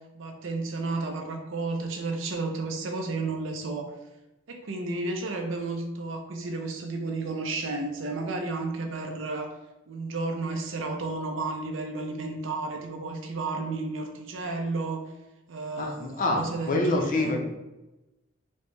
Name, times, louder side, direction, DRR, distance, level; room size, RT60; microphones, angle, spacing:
voice 1, 0.1-3.9 4.5-9.5 9.9-15.0 15.5-17.4, right 3 dB, 70° right, 3 dB, 0.6 m, -32 dB
voice 2, 15.8-17.4, left 2 dB, 45° left, 1 dB, 0.6 m, -26 dB
4.3 x 2.1 x 3.2 m, 1.0 s
head